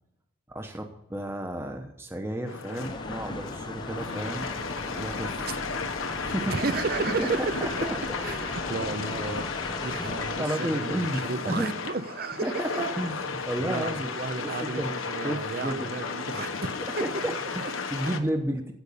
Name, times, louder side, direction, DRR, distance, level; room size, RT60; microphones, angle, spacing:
voice 1, 0.5-4.5 4.9-5.5 6.2-6.7 7.0-7.9 8.6-8.9 10.4-11.7 12.4-14.1 14.4-14.9 15.2-15.9 17.0-18.7, right 1 dB, 10° right, 4 dB, 0.9 m, -32 dB
sound 1, 2.5-18.2, left 4 dB, 85° left, 1.2 m, -34 dB
sound 2, 2.8-10.4, left 2 dB, 20° left, 0.7 m, -38 dB
voice 2, 6.5-7.9 8.2-9.4 9.8-12.5 13.6-17.0 17.6-17.7, right 3 dB, 45° right, 12 dB, 0.7 m, -33 dB
15.5 x 5.3 x 8.4 m, 0.85 s
head